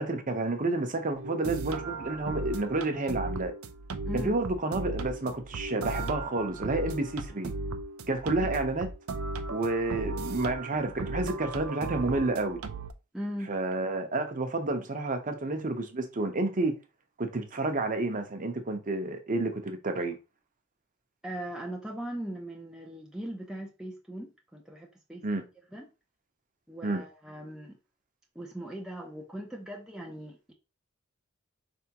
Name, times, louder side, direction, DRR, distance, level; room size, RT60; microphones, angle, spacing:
voice 1, 0.0-3.5 4.1-7.5 8.1-8.9 9.5-12.6 13.5-16.8 17.2-20.2 25.2-25.4 26.8-27.0, right 2 dB, 40° right, 0.8 m, -30 dB
sound 1, 1.2-12.9, right 3 dB, 85° right, 0.5 m, -36 dB
voice 2, 4.1-4.4 8.4-8.5 13.1-13.5 21.2-25.5 25.7-25.9 26.7-27.8 28.4-30.5, right 1 dB, 5° right, 0.6 m, -39 dB
4.9 x 3.5 x 2.9 m
head